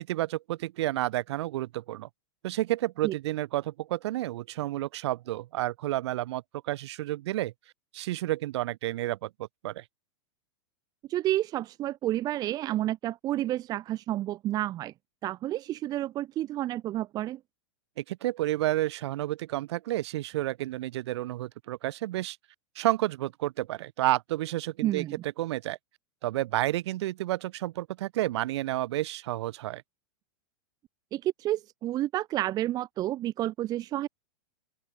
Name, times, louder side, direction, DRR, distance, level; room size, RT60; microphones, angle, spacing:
voice 1, 0.0-2.1 2.4-7.5 7.9-9.8 18.0-22.4 22.7-25.8 26.2-29.8, right 15 dB, 65° right, 2.8 m, -30 dB
voice 2, 11.1-14.9 15.2-17.4 24.8-25.1 31.1-34.1, right 14 dB, 25° right, 0.8 m, -30 dB
open air
supercardioid pair, 150°, 15 cm